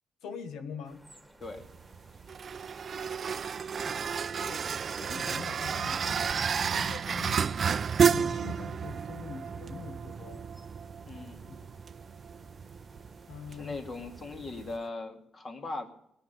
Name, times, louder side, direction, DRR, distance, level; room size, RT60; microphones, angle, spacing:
voice 1, 0.2-1.1 3.8-4.1 4.4-4.6 5.0-6.3 6.6-10.5 11.5-11.7 13.3-13.8, left 6 dB, 80° left, 8 dB, 1.3 m, -43 dB
sound 1, 0.8-14.9, right 1 dB, 5° right, 2.3 m, -58 dB
sound 2, 1.4-14.8, right 6 dB, 45° right, 0.4 m, -32 dB
voice 2, 11.1-11.4 13.5-15.9, left 3 dB, 35° left, 5 dB, 2.4 m, -39 dB
18.5 x 7.4 x 6.8 m, 0.76 s
cardioid pair, 90°, 0 cm